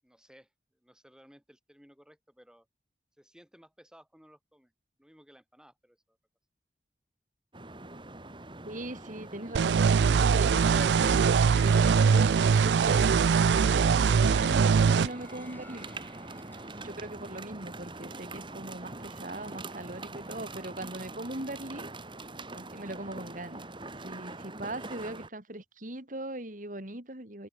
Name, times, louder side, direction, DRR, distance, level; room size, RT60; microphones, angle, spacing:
voice 1, 0.0-2.7 3.2-4.7 5.0-6.2, equal, 5° right, 7.9 m, -58 dB
sound 1, 7.5-25.3, right 2 dB, 30° right, 3.7 m, -43 dB
voice 2, 8.6-9.8 10.1-15.9 16.7-21.9 22.5-23.7 24.0-27.5, right 1 dB, 50° right, 3.8 m, -40 dB
sound 2, 9.5-15.1, right 6 dB, 80° right, 0.4 m, -22 dB
sound 3, 10.9-16.9, left 2 dB, 10° left, 5.7 m, -52 dB
open air
head